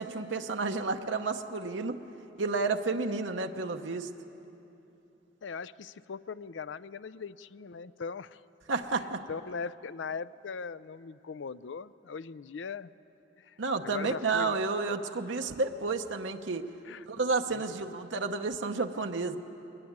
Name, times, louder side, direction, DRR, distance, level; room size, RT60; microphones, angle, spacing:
voice 1, 0.0-2.0 2.4-4.1 8.7-9.2 13.6-16.7 17.1-19.4, right 4 dB, 85° right, 5 dB, 0.9 m, -31 dB
voice 2, 5.4-8.4 9.3-12.9 13.4-13.6 13.8-14.6 16.8-17.1 17.5-17.6, left 5 dB, 80° left, 15 dB, 0.5 m, -40 dB
21.5 x 20.0 x 9.5 m, 3.0 s
head